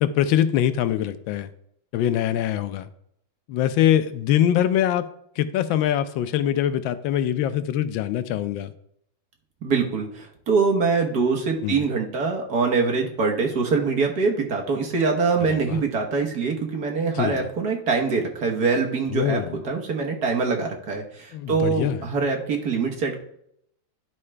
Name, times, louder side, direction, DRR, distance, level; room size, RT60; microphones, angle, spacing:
voice 1, 0.0-1.5 1.9-2.9 3.5-5.1 5.4-8.7 11.6-11.9 15.5-15.8 17.1-17.5 19.1-19.6 21.3-22.0, left 11 dB, 80° left, 12 dB, 1.3 m, -23 dB
voice 2, 9.6-23.2, right 4 dB, 55° right, 2 dB, 1.6 m, -24 dB
11.0 x 4.7 x 3.3 m, 0.72 s
omnidirectional pair, 2.2 m